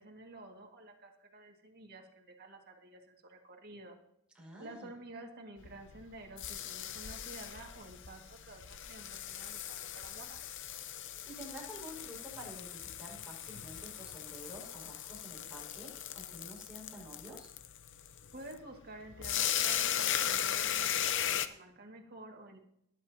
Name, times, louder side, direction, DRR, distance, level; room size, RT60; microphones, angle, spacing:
voice 1, 0.0-4.0 4.6-10.4 18.3-22.6, right 2 dB, 45° right, 2 dB, 2.1 m, -51 dB
voice 2, 4.3-4.9 10.9-17.5, equal, 5° right, -5 dB, 5.7 m, -50 dB
sound 1, 5.6-21.5, left 10 dB, 55° left, 0.7 m, -37 dB
19.5 x 10.5 x 2.9 m, 0.76 s
head